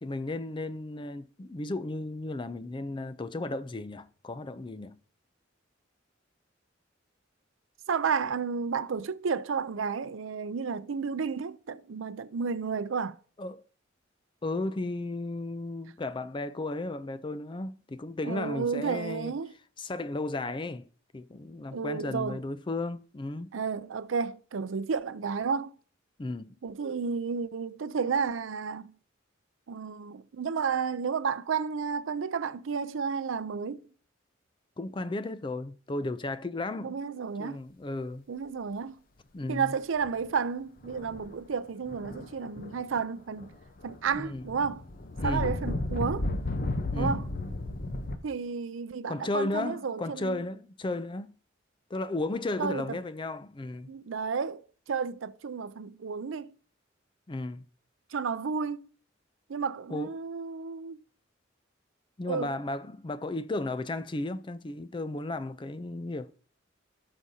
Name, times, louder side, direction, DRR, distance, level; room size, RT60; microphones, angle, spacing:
voice 1, 0.0-5.0 13.4-13.6 14.4-19.3 19.8-20.9 21.1-23.5 26.2-26.5 34.8-37.0 37.4-38.2 39.3-39.7 44.1-44.5 45.2-45.5 46.9-47.2 49.1-51.4 51.9-53.9 57.3-57.7 59.9-60.1 62.2-66.3, left 2 dB, 25° left, 0.4 m, -34 dB
voice 2, 7.9-13.2 18.2-19.5 21.7-22.4 23.5-25.8 26.6-28.9 29.7-33.8 36.8-37.6 38.3-38.9 39.5-43.5 43.8-44.9 45.2-46.3 46.9-47.3 48.2-50.4 52.6-53.0 53.9-56.5 58.1-58.9 59.5-61.0 62.3-62.6, right 5 dB, 80° right, 0.5 m, -32 dB
sound 1, 40.0-40.3 40.8-41.3 41.9-43.1 43.4-48.2, left 2 dB, 45° left, 0.8 m, -33 dB
17.0 x 5.8 x 2.7 m
head